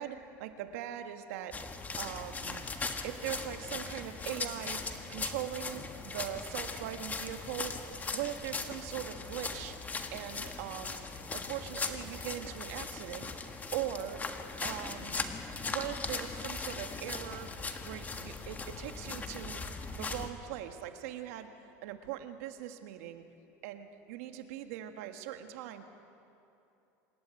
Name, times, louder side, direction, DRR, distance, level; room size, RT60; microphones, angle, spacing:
voice 1, 0.0-1.6 2.0-2.7 3.0-4.8 5.1-7.7 8.1-9.8 10.1-11.1 11.3-13.3 13.7-14.2 14.6-15.3 15.7-17.5 17.8-19.6 20.0-21.5 21.8-23.2 23.6-25.9, right 11 dB, 75° right, 7 dB, 1.7 m, -40 dB
sound 1, 1.5-20.3, left 4 dB, 20° left, 1.6 m, -39 dB
26.5 x 12.5 x 9.2 m, 2.8 s
supercardioid pair, 115°, 8 cm